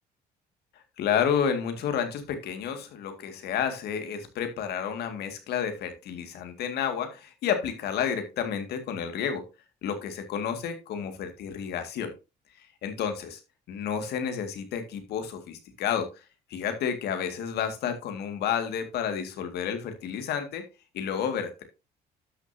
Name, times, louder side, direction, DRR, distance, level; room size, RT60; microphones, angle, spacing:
voice 1, 1.0-9.5 9.8-12.1 12.8-13.4 13.7-16.1 16.5-20.7 20.9-21.6, left 8 dB, 75° left, 7 dB, 2.0 m, -30 dB
12.0 x 6.5 x 2.7 m, 0.27 s
cardioid pair, 110°, 17 cm